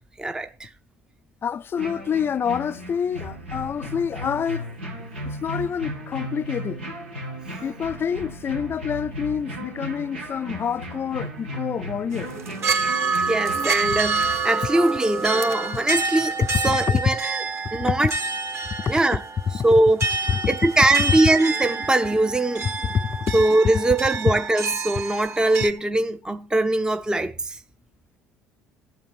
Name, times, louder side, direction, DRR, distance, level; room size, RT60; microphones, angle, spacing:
voice 1, 0.2-0.7 13.3-16.3 16.6-17.4 17.7-18.1 18.9-19.2 19.6-20.0 20.5-22.7 23.3-27.6, right 2 dB, 10° right, 0.7 m, -21 dB
voice 2, 1.4-4.7 5.2-6.9 7.6-12.3 16.6-17.0 17.8-17.9 18.8-18.9 19.5-19.6 22.9-23.4, left 7 dB, 35° left, 0.5 m, -27 dB
sound 1, 1.7-14.4, equal, 90° right, 2.3 m, -35 dB
sound 2, 12.1-25.7, right 4 dB, 40° right, 1.6 m, -28 dB
13.0 x 7.9 x 5.0 m
figure-of-eight pair, 60°, 7 cm